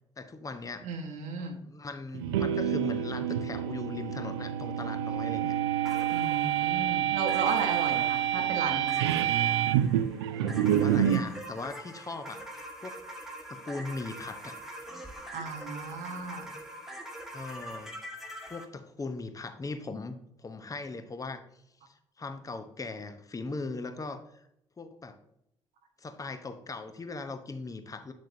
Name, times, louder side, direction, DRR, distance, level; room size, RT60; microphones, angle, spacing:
voice 1, 0.2-0.9 1.6-5.5 8.1-8.5 10.3-12.4 12.8-13.0 13.5-14.5 17.3-18.0 18.5-21.4 21.9-24.4 24.8-25.2 26.0-28.1, left 3 dB, 25° left, 9 dB, 0.8 m, -39 dB
voice 2, 0.8-1.6 6.1-8.9 15.3-16.5, right 4 dB, 65° right, 3 dB, 1.0 m, -34 dB
sound 1, 2.1-11.3, right 10 dB, 80° right, 0.4 m, -28 dB
sound 2, 5.8-18.7, right 1 dB, 5° right, 1.4 m, -44 dB
7.5 x 7.0 x 2.7 m, 0.78 s
figure-of-eight pair, 45°, 14 cm